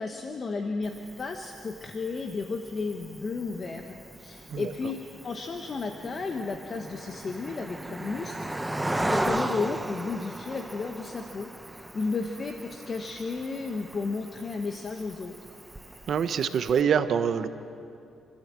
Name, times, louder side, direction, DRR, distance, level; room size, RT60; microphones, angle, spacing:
voice 1, 0.0-15.3, left 4 dB, 40° left, 4 dB, 1.3 m, -33 dB
Cricket, 0.8-16.8, right 1 dB, 10° right, 0.9 m, -37 dB
voice 2, 16.1-17.5, right 7 dB, 60° right, 10 dB, 1.0 m, -25 dB
29.0 x 13.0 x 7.7 m, 2.5 s
cardioid pair, 90°, 0 cm